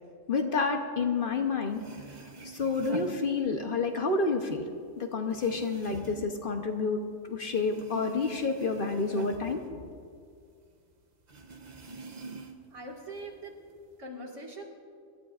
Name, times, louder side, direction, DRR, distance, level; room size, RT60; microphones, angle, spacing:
voice 1, 0.3-1.8 2.4-4.6 5.0-7.0 7.3-9.8, left 4 dB, 50° left, 4 dB, 0.9 m, -29 dB
sound 1, 1.4-1.5 1.7-3.9 4.2-7.2 7.4-10.4 10.7-10.8 11.3-12.8 13.1-13.9, right 3 dB, 40° right, 0.8 m, -45 dB
voice 2, 12.7-13.6 14.0-14.6, right 1 dB, 75° right, 0 dB, 2.3 m, -42 dB
24.0 x 12.0 x 2.4 m, 2.2 s
omnidirectional pair, 1.3 m